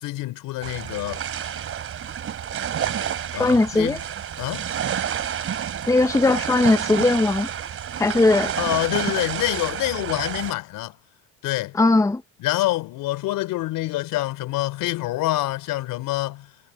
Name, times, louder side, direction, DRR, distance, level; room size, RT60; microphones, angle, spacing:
voice 1, 0.0-1.2 3.3-4.0 4.4-4.7 8.6-11.0 11.4-11.8 12.4-16.5, left 16 dB, 65° left, 3.7 m, -26 dB
sound 1, 0.6-10.5, right 9 dB, 40° right, 3.1 m, -29 dB
voice 2, 3.3-4.0 5.9-7.5 8.0-8.5 11.8-12.2, left 2 dB, 10° left, 1.0 m, -19 dB
cardioid pair, 115°, 35 cm